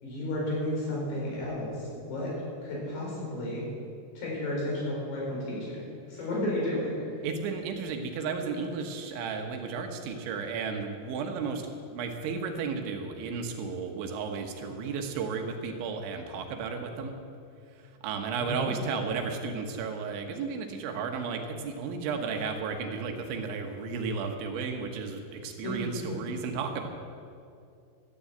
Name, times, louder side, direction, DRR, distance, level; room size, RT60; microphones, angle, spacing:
voice 1, 0.0-2.3 2.6-3.6 4.2-5.8 6.1-7.1 18.4-18.7 25.6-26.2, left 1 dB, 60° left, -4 dB, 6.3 m, -32 dB
voice 2, 7.2-17.1 18.0-26.9, right 5 dB, 85° right, 4 dB, 3.6 m, -33 dB
13.5 x 10.0 x 7.9 m, 2.4 s
omnidirectional pair, 5.3 m